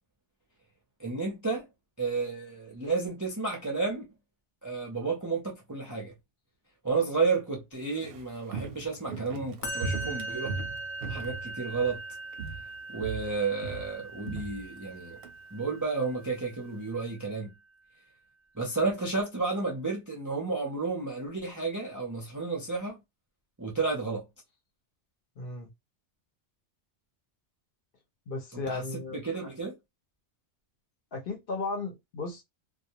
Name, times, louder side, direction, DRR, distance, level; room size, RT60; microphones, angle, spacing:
voice 1, 1.0-1.7 2.0-4.1 4.6-6.1 6.8-10.5 11.1-12.0 12.9-15.2 15.5-17.5 18.5-23.0 23.6-24.2 28.5-28.8 29.1-29.8, right 4 dB, 30° right, 0.3 m, -31 dB
Walk footsteps, 7.7-12.1 12.3-12.7 13.0-15.3 15.6-15.7, right 3 dB, 65° right, 0.7 m, -38 dB
Musical instrument, 9.6-16.9, right 2 dB, 80° left, 1.0 m, -40 dB
voice 2, 25.4-25.7 28.3-29.2 31.1-32.4, left 3 dB, 55° left, 0.8 m, -35 dB
2.3 x 2.1 x 2.7 m
omnidirectional pair, 1.2 m